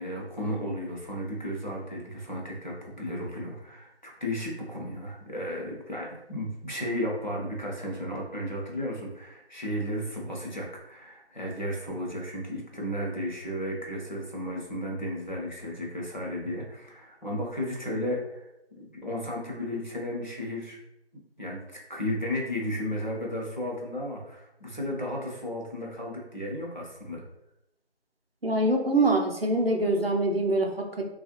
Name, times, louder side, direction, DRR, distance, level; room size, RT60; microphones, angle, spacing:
voice 1, 0.0-18.5 18.9-20.8 21.4-27.2, equal, 40° left, -3 dB, 0.8 m, -34 dB
voice 2, 28.4-31.0, right 2 dB, 60° right, 1 dB, 0.6 m, -24 dB
2.9 x 2.4 x 2.8 m, 0.86 s
figure-of-eight pair, 175°, 34 cm